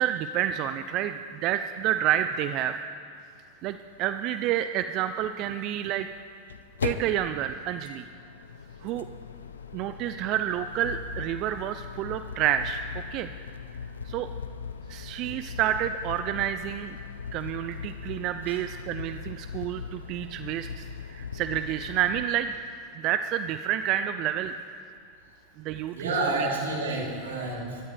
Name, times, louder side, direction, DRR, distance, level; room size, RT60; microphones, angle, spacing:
voice 1, 0.0-2.8 3.6-6.1 6.8-8.0 8.8-9.1 9.7-12.8 13.1-13.3 14.0-14.3 14.9-17.0 17.3-22.5 23.0-24.5 25.6-26.5, right 11 dB, 50° right, 10 dB, 0.5 m, -29 dB
sound 1, 3.7-3.8 4.0-4.1 6.0-22.3, left 6 dB, 90° left, 0.6 m, -39 dB
voice 2, 25.9-27.8, right 2 dB, 85° right, -2 dB, 3.2 m, -29 dB
23.5 x 13.0 x 3.4 m, 2.4 s
hypercardioid pair, 100°, 0 cm